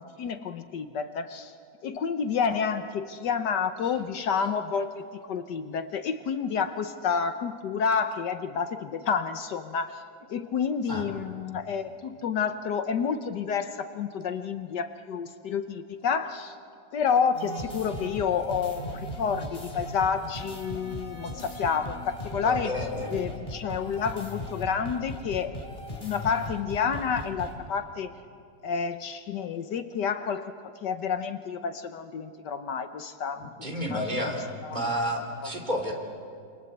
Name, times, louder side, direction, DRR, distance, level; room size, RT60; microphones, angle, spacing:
voice 1, 0.0-1.5 1.8-10.0 10.3-16.6 16.9-22.7 23.1-25.6 26.0-28.1 28.6-30.5 30.8-33.5 33.9-34.2 34.6-34.8 35.4-35.5, left 6 dB, 70° left, 9 dB, 1.5 m, -29 dB
sound 1, 17.3-27.5, left 1 dB, 15° left, 3.7 m, -38 dB
voice 2, 22.4-23.2 33.6-34.4 34.7-35.9, equal, 25° right, 1 dB, 3.5 m, -30 dB
28.0 x 26.0 x 8.1 m, 2.4 s
omnidirectional pair, 2.0 m